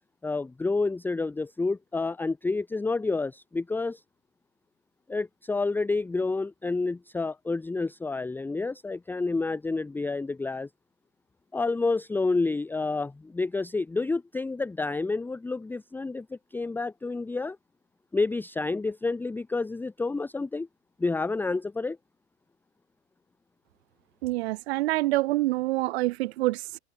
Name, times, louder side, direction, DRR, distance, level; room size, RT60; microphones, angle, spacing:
voice 1, 0.2-4.0 5.1-10.7 11.5-17.6 18.1-20.7 21.0-22.0, left 3 dB, 5° left, 0.7 m, -29 dB
voice 2, 24.2-26.8, right 19 dB, 75° right, 1.3 m, -26 dB
supercardioid pair, 125°, 32 cm